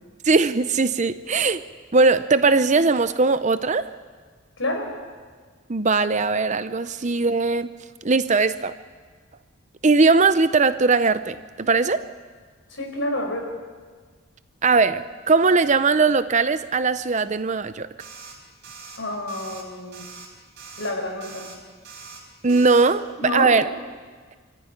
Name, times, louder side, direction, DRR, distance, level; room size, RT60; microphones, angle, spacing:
voice 1, 0.2-1.6 1.9-3.8 5.7-7.7 8.0-8.7 9.8-12.1 14.6-17.9 22.4-23.1 23.3-23.7, right 4 dB, 35° right, 12 dB, 0.7 m, -19 dB
voice 2, 4.6-4.9 12.7-13.4 19.0-20.1 20.8-21.5 23.2-23.5, left 1 dB, 70° left, 2 dB, 5.0 m, -28 dB
sound 1, 18.0-18.4 18.6-19.0 19.3-19.6 19.9-20.3 20.6-20.9 21.2-21.6 21.8-22.2 22.5-22.9, right 5 dB, 55° right, 4.3 m, -42 dB
25.5 x 14.0 x 9.9 m, 1.5 s
head